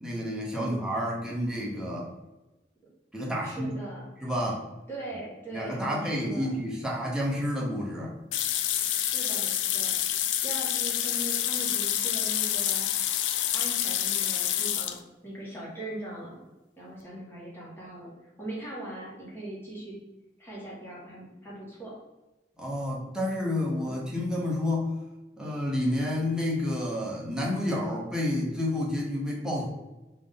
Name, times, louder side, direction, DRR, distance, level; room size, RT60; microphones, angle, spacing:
voice 1, 0.0-2.1 3.1-3.7 4.2-4.6 5.5-8.1 22.6-25.0 25.4-29.7, left 1 dB, 5° right, -4 dB, 0.7 m, -30 dB
voice 2, 0.5-0.9 3.4-4.0 4.9-6.5 8.9-10.0 10.4-12.9 13.3-15.0 15.2-16.4 16.8-19.9 20.4-21.9 23.8-24.0, right 1 dB, 15° left, -7 dB, 1.3 m, -40 dB
sound 1, 8.3-15.0, left 11 dB, 90° left, 0.3 m, -28 dB
3.5 x 2.6 x 3.6 m, 1.1 s
head